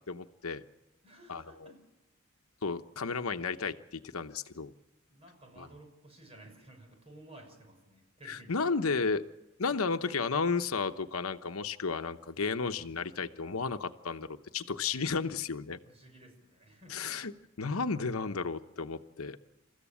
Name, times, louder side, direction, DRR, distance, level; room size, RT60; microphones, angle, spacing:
voice 1, 0.1-0.6 1.3-1.4 2.6-4.7 8.3-9.2 9.6-15.8 16.9-17.3 17.6-19.4, left 4 dB, 85° left, 9 dB, 1.0 m, -33 dB
voice 2, 1.0-1.9 5.1-9.0 9.7-9.9 15.8-17.4 19.4-19.5, right 1 dB, 30° right, 3 dB, 6.2 m, -55 dB
29.0 x 14.5 x 8.6 m, 0.95 s
head